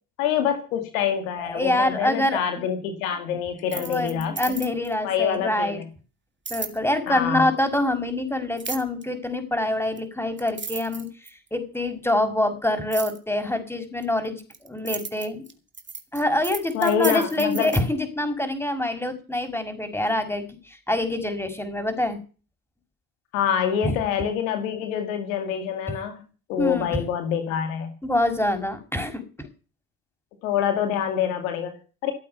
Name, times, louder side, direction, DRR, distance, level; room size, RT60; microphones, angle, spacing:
voice 1, 0.2-4.3 5.0-5.9 7.1-7.5 16.7-17.7 23.3-26.2 26.5-27.9 30.4-32.1, left 9 dB, 90° left, 7 dB, 2.2 m, -26 dB
voice 2, 1.4-2.6 3.7-5.8 6.5-15.4 16.1-22.2 23.8-24.0 26.6-26.9 28.0-29.5, left 1 dB, 5° left, 7 dB, 5.8 m, -26 dB
sound 1, 3.6-4.9 6.4-6.8 8.6-9.0 10.0-10.1 10.4-11.5 12.9-13.2 14.0-17.8, right 5 dB, 30° right, 2.3 m, -34 dB
16.0 x 8.6 x 6.9 m, 0.36 s
hypercardioid pair, 55°, 39 cm